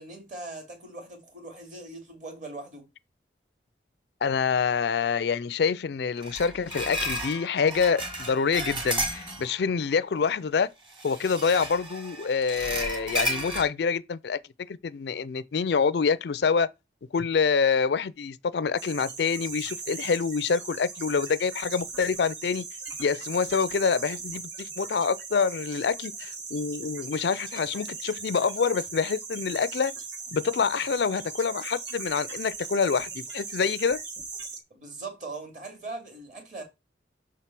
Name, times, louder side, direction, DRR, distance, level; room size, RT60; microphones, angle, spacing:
voice 1, 0.0-2.9 34.7-36.6, right 3 dB, 45° right, 2.7 m, -40 dB
voice 2, 4.2-10.7 11.0-14.4 14.7-16.7 17.1-22.6 23.0-29.9 30.3-34.0, left 5 dB, 65° left, 0.4 m, -26 dB
sound 1, 6.2-9.7 10.9-13.6, equal, 25° right, 1.7 m, -33 dB
sound 2, 18.8-34.6, right 4 dB, 70° right, 1.5 m, -39 dB
6.2 x 4.6 x 5.8 m
head